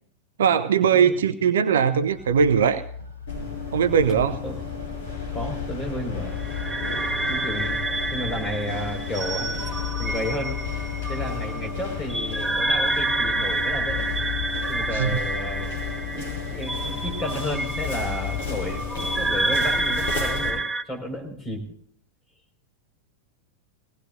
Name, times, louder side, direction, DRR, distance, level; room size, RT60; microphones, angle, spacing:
voice 1, 0.4-2.9 3.7-4.4 14.9-15.1, right 7 dB, 60° right, 12 dB, 0.7 m, -20 dB
sound 1, 2.0-12.6, left 4 dB, 80° left, 3.3 m, -44 dB
sound 2, 3.3-20.5, left 6 dB, 55° left, 6.0 m, -32 dB
voice 2, 4.2-4.6 5.3-6.3 7.3-7.8 8.1-9.6 10.0-10.6 11.1-14.1 14.7-15.7 16.1-16.2 16.5-21.6, equal, 15° left, 2 dB, 4.8 m, -32 dB
sound 3, 6.4-20.8, right 2 dB, 10° right, 0.8 m, -28 dB
22.0 x 18.5 x 2.6 m, 0.63 s
figure-of-eight pair, 90°, 0 cm